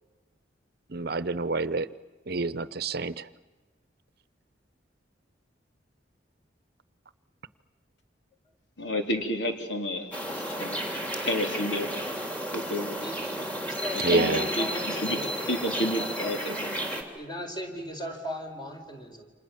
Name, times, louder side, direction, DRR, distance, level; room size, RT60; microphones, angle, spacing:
voice 1, 0.9-1.9 2.3-3.3 14.0-14.5, right 3 dB, 60° right, 15 dB, 0.9 m, -28 dB
voice 2, 8.8-10.8 11.2-11.9 12.5-13.0 14.1-16.8, left 1 dB, 80° left, 4 dB, 3.7 m, -31 dB
sound 1, 10.1-17.0, equal, 10° left, 3.6 m, -32 dB
voice 3, 13.0-13.3 13.6-15.3 15.7-16.3 17.1-19.3, equal, 25° left, 3 dB, 4.6 m, -37 dB
29.5 x 27.0 x 7.3 m, 1.3 s
head